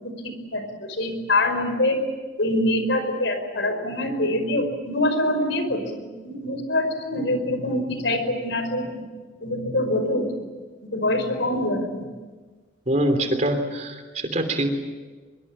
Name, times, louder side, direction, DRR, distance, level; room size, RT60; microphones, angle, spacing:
voice 1, 0.5-2.0 2.4-9.0 9.4-10.3 10.9-12.1, left 1 dB, 75° left, 8 dB, 5.2 m, -24 dB
voice 2, 12.9-14.7, right 1 dB, 35° right, 7 dB, 3.2 m, -24 dB
24.0 x 24.0 x 8.8 m, 1.4 s
head